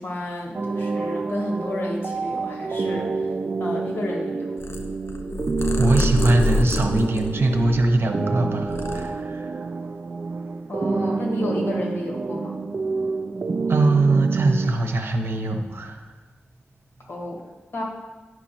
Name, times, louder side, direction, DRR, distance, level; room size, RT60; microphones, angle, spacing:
voice 1, 0.0-3.3 3.6-4.5 10.7-12.6 17.1-17.4 17.7-17.8, left 1 dB, 65° left, -1 dB, 2.0 m, -31 dB
sound 1, 0.5-14.8, right 4 dB, 50° right, 0.3 m, -28 dB
Purr, 4.6-8.1 8.5-9.6, left 2 dB, 85° left, 0.7 m, -27 dB
voice 2, 5.8-9.7 13.7-16.0, right 2 dB, 70° right, 4 dB, 0.9 m, -22 dB
9.4 x 6.1 x 4.4 m, 1.2 s
wide cardioid pair, 115°, 4 cm